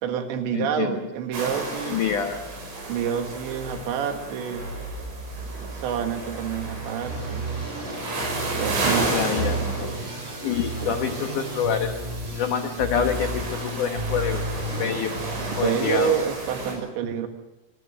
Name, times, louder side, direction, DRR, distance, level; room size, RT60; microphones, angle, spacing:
voice 1, 0.0-2.1 2.9-4.7 5.7-7.5 8.5-9.1 10.8-11.0 15.6-17.3, right 8 dB, 75° right, 5 dB, 4.0 m, -28 dB
voice 2, 0.5-1.0 1.9-2.4 9.1-9.9 10.4-12.0 12.3-14.4 14.8-15.1 15.6-16.1, left 7 dB, 70° left, 5 dB, 1.9 m, -26 dB
sound 1, 1.3-16.7, right 2 dB, 90° right, 8.8 m, -32 dB
sound 2, 7.0-16.2, right 2 dB, 20° right, 3.2 m, -33 dB
sound 3, 7.2-12.2, left 2 dB, 30° left, 4.5 m, -40 dB
25.0 x 20.0 x 6.4 m, 1.0 s
omnidirectional pair, 5.4 m